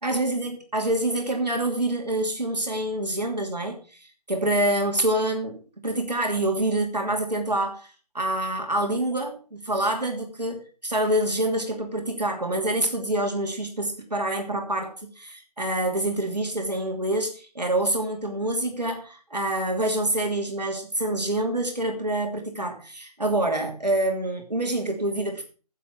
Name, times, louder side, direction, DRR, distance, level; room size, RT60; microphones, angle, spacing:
voice 1, 0.0-25.4, right 1 dB, 80° right, 2 dB, 2.7 m, -26 dB
10.0 x 7.5 x 5.9 m, 0.37 s
figure-of-eight pair, 150°, 21 cm